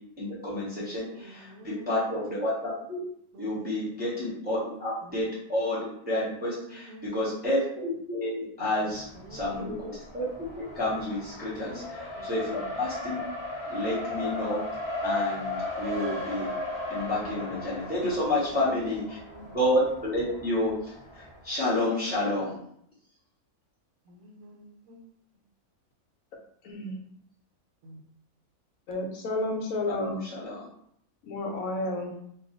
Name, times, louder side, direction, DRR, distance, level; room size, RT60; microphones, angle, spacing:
voice 1, 0.2-3.0 3.4-13.3 13.7-14.7 15.0-16.5 16.9-19.2 19.5-22.6 29.9-30.6, left 1 dB, 10° right, -8 dB, 0.7 m, -30 dB
voice 2, 0.8-1.9 3.3-3.8 4.6-4.8 6.9-7.1 9.1-9.8 11.6-11.9 12.2-12.6 19.1-19.6 24.1-25.0, right 1 dB, 70° right, 1 dB, 1.0 m, -47 dB
Race car auto racing, 8.9-21.5, left 2 dB, 30° left, 0.5 m, -36 dB
voice 3, 26.6-27.0 28.9-30.2 31.2-32.1, left 2 dB, 75° left, 2 dB, 1.0 m, -31 dB
2.5 x 2.3 x 3.8 m, 0.69 s
omnidirectional pair, 1.5 m